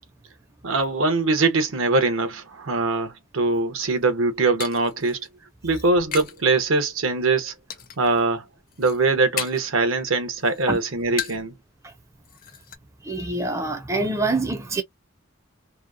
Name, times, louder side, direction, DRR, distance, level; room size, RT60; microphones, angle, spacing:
voice 1, 0.6-5.3 5.6-7.5 8.0-8.4 8.8-11.5, right 3 dB, 75° right, 0.8 m, -22 dB
sound 1, 3.9-6.4 6.8-7.3 7.7-8.2 8.5-9.8 10.1-11.6 11.9-12.0 12.2-12.8, left 8 dB, 40° left, 0.4 m, -35 dB
voice 2, 13.0-14.8, right 2 dB, 15° right, 0.4 m, -25 dB
2.9 x 2.0 x 2.3 m
head